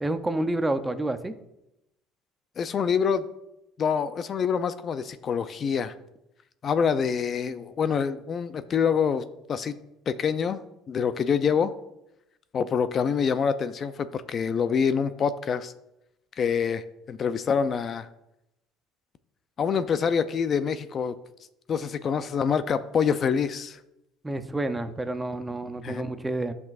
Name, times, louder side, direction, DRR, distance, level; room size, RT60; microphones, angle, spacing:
voice 1, 0.0-1.4 24.2-26.5, right 2 dB, 10° right, 9 dB, 0.6 m, -29 dB
voice 2, 2.6-3.2 3.8-5.9 6.6-9.7 10.1-10.6 10.9-11.7 12.5-15.7 16.4-18.1 19.6-21.2 21.7-23.8 25.8-26.0, left 6 dB, 40° left, 13 dB, 0.4 m, -26 dB
11.5 x 5.9 x 2.4 m, 0.87 s
cardioid pair, 115°, 0 cm